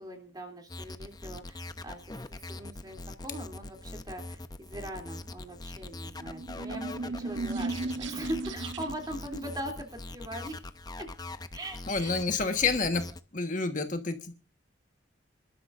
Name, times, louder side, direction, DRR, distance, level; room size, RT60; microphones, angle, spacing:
voice 1, 0.0-7.7 8.1-10.6 11.0-11.1 11.5-12.2, right 1 dB, 20° right, 3 dB, 2.9 m, -41 dB
sound 1, 0.7-13.2, left 2 dB, 20° left, 0.7 m, -42 dB
sound 2, 6.2-9.2, right 3 dB, 90° right, 0.8 m, -36 dB
voice 2, 11.9-13.0 13.3-14.4, left 4 dB, 45° left, 6 dB, 1.4 m, -28 dB
28.0 x 12.0 x 2.6 m, 0.33 s
head